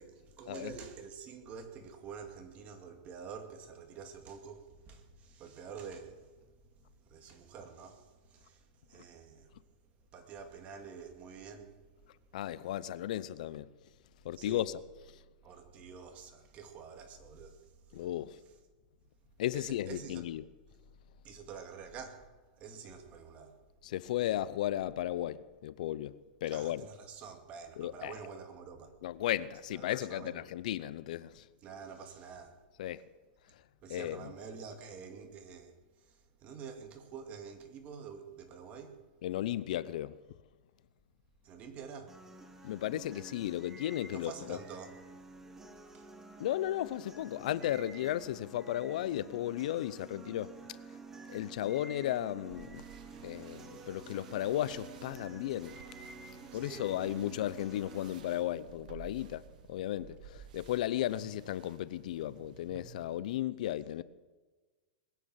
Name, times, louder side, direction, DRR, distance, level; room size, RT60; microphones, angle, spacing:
voice 1, 0.0-6.3 6.8-9.5 10.1-11.8 14.4-14.7 15.4-18.1 19.5-20.2 21.2-22.3 22.6-23.6 26.5-28.9 29.7-30.4 31.6-32.6 33.8-39.0 41.4-42.2 44.1-45.0 45.9-46.1 56.5-57.1, right 6 dB, 30° right, 2.4 m, -48 dB
voice 2, 12.3-13.7 14.2-14.8 17.9-18.4 19.4-20.4 23.8-26.2 26.4-26.9 27.8-28.1 29.0-31.4 32.8-33.0 33.9-34.2 39.2-40.2 42.6-44.6 46.4-50.5 51.3-52.9 53.2-55.8 56.5-59.4 59.7-64.0, left 13 dB, 65° left, 0.7 m, -35 dB
sound 1, 42.1-58.1, right 3 dB, 10° right, 1.7 m, -51 dB
sound 2, 52.5-63.2, right 8 dB, 70° right, 1.3 m, -54 dB
21.0 x 9.4 x 7.4 m
hypercardioid pair, 140°, 4 cm